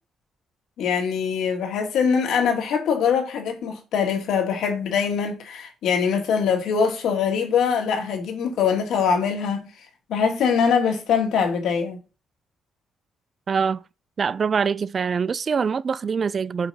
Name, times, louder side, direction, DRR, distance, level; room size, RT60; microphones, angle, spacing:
voice 1, 0.8-9.7 10.1-12.0, left 6 dB, 75° left, 2.0 m, -23 dB
voice 2, 13.5-13.8 14.2-16.7, right 6 dB, 35° right, 0.3 m, -24 dB
6.0 x 5.2 x 5.6 m
cardioid pair, 135°, 0 cm